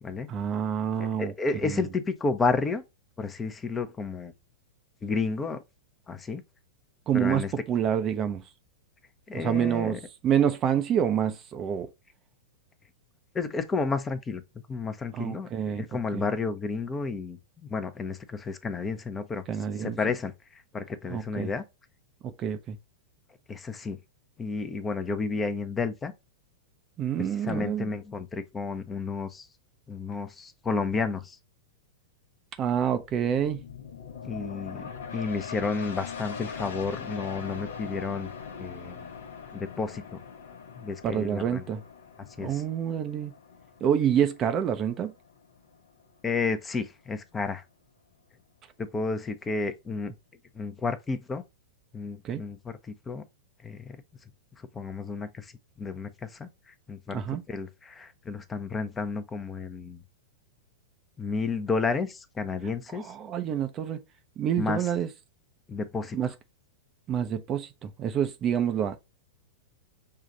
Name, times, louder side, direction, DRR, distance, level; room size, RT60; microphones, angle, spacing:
voice 1, 0.3-1.3 1.6-1.9 7.1-8.4 9.3-11.9 15.1-15.9 16.1-16.2 19.5-20.0 21.1-21.5 22.2-22.8 27.0-27.9 32.6-33.6 41.0-41.8 42.4-43.3 43.8-45.1 52.2-52.4 57.1-57.4 62.9-64.0 64.4-65.1 66.1-66.3 67.1-69.0, right 9 dB, 30° right, 0.6 m, -27 dB
voice 2, 1.0-2.8 3.2-4.3 5.0-5.6 6.1-6.4 7.1-7.5 9.3-10.0 13.3-14.4 14.7-19.4 19.8-20.3 20.7-21.6 23.5-24.0 24.4-26.1 27.4-29.5 29.9-31.4 34.2-38.3 38.6-39.1 39.5-40.2 40.8-41.6 42.4-42.6 46.2-47.6 48.8-50.1 50.6-51.4 51.9-52.7 53.1-53.2 53.6-54.0 54.7-55.5 55.8-56.5 56.9-57.2 57.5-60.0 61.2-63.1 64.6-64.8 65.7-66.2, left 4 dB, 15° left, 0.7 m, -31 dB
sound 1, 33.0-45.9 46.3-46.4, left 6 dB, 70° left, 0.8 m, -42 dB
5.6 x 2.4 x 3.9 m
hypercardioid pair, 100°, 0 cm